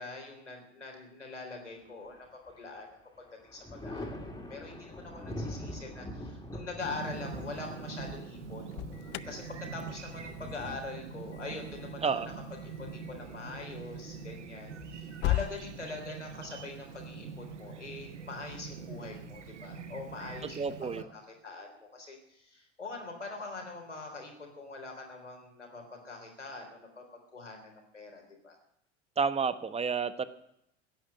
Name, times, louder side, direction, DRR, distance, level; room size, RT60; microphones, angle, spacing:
voice 1, 0.0-2.3 2.6-2.9 3.2-3.3 3.5-4.2 4.5-8.7 9.2-9.4 9.7-12.1 12.6-27.0 27.3-28.6, left 3 dB, 90° left, 2 dB, 3.8 m, -43 dB
Thunder, 2.0-2.8 3.1-12.7 14.2-15.1, left 1 dB, 10° left, 3.0 m, -44 dB
Chirp tweet, 6.8-21.0, right 5 dB, 80° right, 1.1 m, -44 dB
Alarm, 8.6-15.5, left 18 dB, 40° left, 0.5 m, -39 dB
voice 2, 20.6-21.1 29.2-30.2, right 5 dB, 20° right, 13 dB, 1.1 m, -30 dB
15.5 x 8.9 x 9.3 m, 0.78 s
figure-of-eight pair, 75°, 35 cm